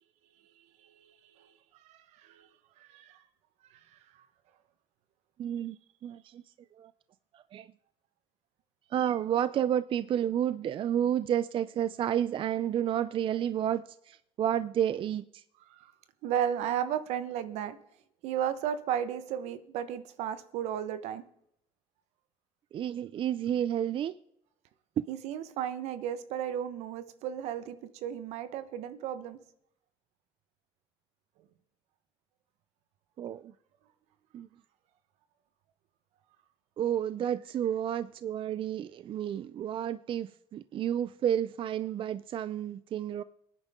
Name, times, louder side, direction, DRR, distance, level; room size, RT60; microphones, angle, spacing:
voice 1, 0.6-1.5 1.8-2.5 2.8-3.2 3.7-4.0 15.6-15.9 16.2-17.8 18.2-21.2 25.1-29.4, right 9 dB, 85° right, 1.2 m, -34 dB
voice 2, 5.4-5.8 6.0-6.4 6.8-6.9 7.3-7.7 8.9-15.4 22.7-24.2 33.2-33.5 34.3-34.5 36.8-43.2, right 10 dB, 50° right, 0.5 m, -31 dB
22.5 x 10.0 x 3.7 m
cardioid pair, 95°, 11 cm